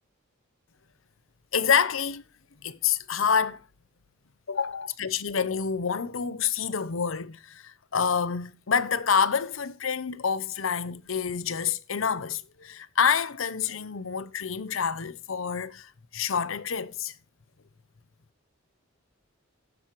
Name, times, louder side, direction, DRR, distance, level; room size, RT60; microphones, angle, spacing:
voice 1, 1.5-2.2 2.6-3.6 4.5-17.1, left 6 dB, 75° left, 0.8 m, -27 dB
12.5 x 10.5 x 3.1 m
head